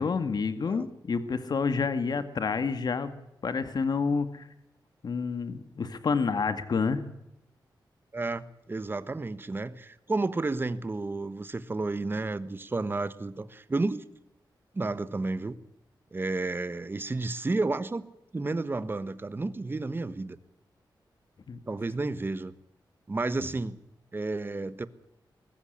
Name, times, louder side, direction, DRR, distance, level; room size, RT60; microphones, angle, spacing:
voice 1, 0.0-3.1 3.4-4.5 5.0-7.0 21.5-21.6, left 5 dB, 60° left, 11 dB, 1.9 m, -29 dB
voice 2, 8.1-14.0 14.7-15.6 16.1-20.4 21.7-22.5 23.1-23.8 24.1-24.9, right 3 dB, 25° right, 14 dB, 1.3 m, -31 dB
22.0 x 14.5 x 9.9 m, 0.86 s
wide cardioid pair, 115°, 8 cm